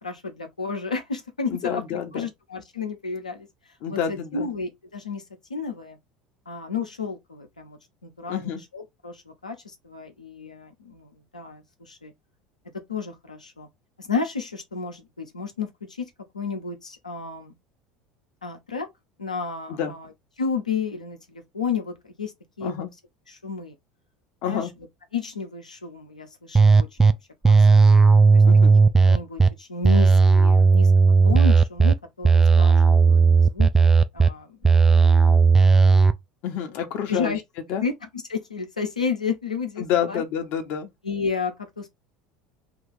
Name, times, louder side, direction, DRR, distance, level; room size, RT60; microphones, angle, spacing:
voice 1, 0.0-3.5 3.9-5.2 5.5-6.0 6.5-12.1 12.9-13.7 14.0-17.5 18.4-18.9 19.2-20.1 20.4-22.3 22.6-22.7 23.3-23.7 24.4-24.7 25.1-27.2 27.4-27.9 28.3-28.4 29.1-35.4 37.1-37.4 37.7-37.9 38.3-40.2 41.0-41.9, left 5 dB, 80° left, 0.7 m, -32 dB
voice 2, 1.5-2.3 3.8-4.5 8.3-8.6 19.7-19.9 22.6-22.9 24.4-24.7 28.4-28.7 36.4-37.3 37.7-37.8 39.8-40.9, left 8 dB, 50° left, 0.8 m, -28 dB
sound 1, 26.5-27.1 27.4-29.5 29.8-31.9 32.2-34.3 34.6-36.1, right 4 dB, 10° right, 0.4 m, -15 dB
2.9 x 2.4 x 3.8 m
figure-of-eight pair, 70°, 4 cm